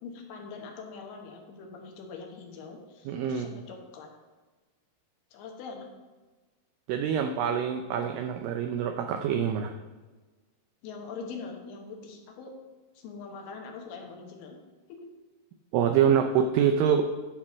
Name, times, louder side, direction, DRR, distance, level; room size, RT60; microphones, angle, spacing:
voice 1, 0.0-4.1 5.3-5.9 10.8-12.5 12.9-14.6 14.9-15.1, left 4 dB, 75° left, 2 dB, 3.2 m, -43 dB
voice 2, 3.1-3.5 6.9-9.7 15.7-17.1, right 8 dB, 85° right, 6 dB, 1.9 m, -25 dB
11.5 x 4.4 x 6.0 m, 1.3 s
omnidirectional pair, 4.6 m